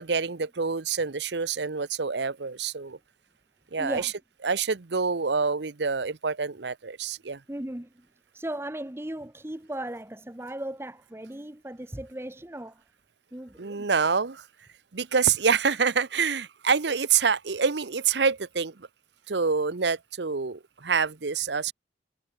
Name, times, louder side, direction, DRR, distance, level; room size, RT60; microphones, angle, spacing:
voice 1, 0.0-3.0 3.7-4.1 4.4-7.4 13.6-14.4 14.9-18.9 19.3-21.7, right 5 dB, 75° right, 0.9 m, -26 dB
voice 2, 3.8-4.1 7.5-8.1 8.3-12.8 13.3-13.9, right 1 dB, 15° right, 0.8 m, -37 dB
head